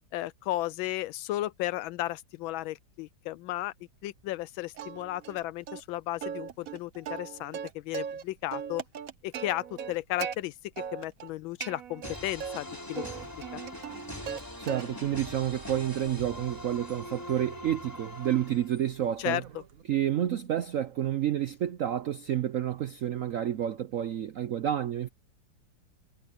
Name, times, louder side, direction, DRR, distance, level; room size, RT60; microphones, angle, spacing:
voice 1, 0.1-3.7 4.0-8.8 9.2-10.5 10.9-13.0 13.3-13.6 19.2-19.4, left 16 dB, 85° left, 1.3 m, -34 dB
Plucked string instrument, 4.8-5.4 5.7-5.8 6.2-8.2 8.5-10.4 10.8-11.3 11.6-12.6 12.9-14.4 14.7-15.2 15.6-19.8, right 7 dB, 55° right, 1.2 m, -39 dB
sound 1, 12.0-19.0, left 1 dB, 10° left, 3.7 m, -42 dB
voice 2, 14.6-19.4 19.9-25.1, right 11 dB, 75° right, 0.7 m, -29 dB
omnidirectional pair, 2.1 m